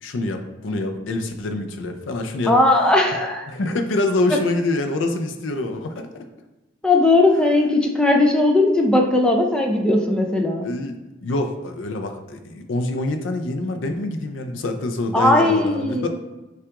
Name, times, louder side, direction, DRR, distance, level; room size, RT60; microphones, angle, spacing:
voice 1, 0.0-2.6 3.5-6.3 10.6-16.1, left 2 dB, 85° left, 6 dB, 0.5 m, -25 dB
voice 2, 2.5-3.5 6.8-10.7 15.1-16.1, left 2 dB, 5° left, 1 dB, 0.4 m, -18 dB
5.7 x 2.4 x 3.5 m, 1.1 s
head